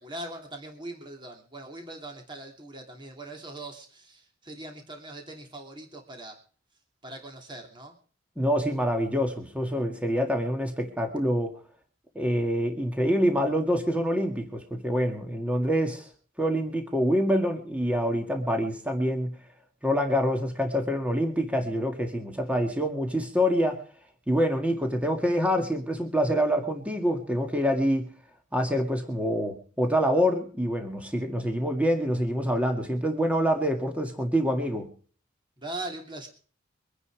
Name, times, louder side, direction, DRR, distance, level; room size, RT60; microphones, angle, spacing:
voice 1, 0.0-6.4 7.0-8.0 35.6-36.3, right 2 dB, 25° right, 3 dB, 2.9 m, -41 dB
voice 2, 8.4-11.6 12.2-16.1 16.4-19.3 19.8-23.8 24.3-28.1 28.5-34.9, equal, 5° right, 4 dB, 2.0 m, -26 dB
24.0 x 9.8 x 4.8 m, 0.42 s
head